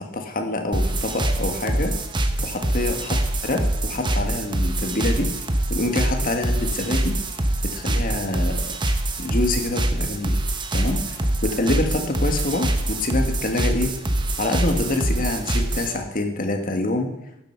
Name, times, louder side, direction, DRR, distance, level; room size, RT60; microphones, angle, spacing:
voice 1, 0.0-1.9 2.4-3.2 3.4-5.3 5.7-7.1 7.6-8.6 9.2-10.3 10.7-13.9 14.4-17.1, left 2 dB, 50° left, 4 dB, 1.6 m, -26 dB
sound 1, 0.7-16.0, right 1 dB, 25° right, 1.0 m, -24 dB
12.0 x 7.8 x 5.7 m, 0.90 s
head